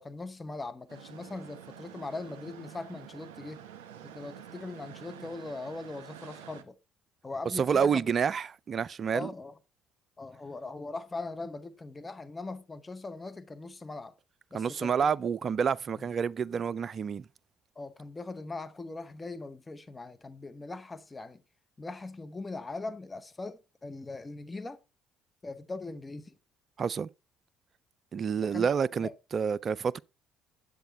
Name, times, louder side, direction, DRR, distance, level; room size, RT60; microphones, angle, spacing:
voice 1, 0.0-3.6 4.0-6.7 7.2-8.0 9.1-9.6 10.2-14.1 14.5-15.1 16.0-16.1 17.7-21.4 21.8-24.8 25.4-26.3 28.4-28.7 29.0-29.1, left 3 dB, 20° left, 1.2 m, -40 dB
sound 1, 0.9-6.6, right 9 dB, 70° right, 1.0 m, -48 dB
voice 2, 7.6-9.3 14.5-17.2 26.8-27.1 28.1-30.0, right 6 dB, 40° right, 0.4 m, -28 dB
10.5 x 8.1 x 4.2 m
figure-of-eight pair, 50°, 0 cm